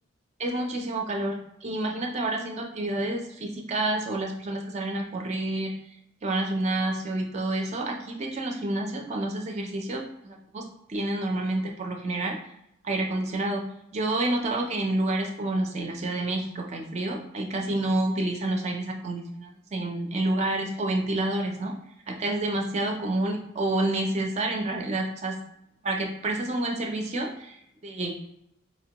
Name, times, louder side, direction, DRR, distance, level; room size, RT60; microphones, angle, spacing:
voice 1, 0.4-5.7 6.2-12.4 12.8-13.6 13.9-21.8 22.1-25.4 25.8-28.1, right 2 dB, 30° right, 2 dB, 0.4 m, -29 dB
4.1 x 2.1 x 2.8 m, 0.77 s
head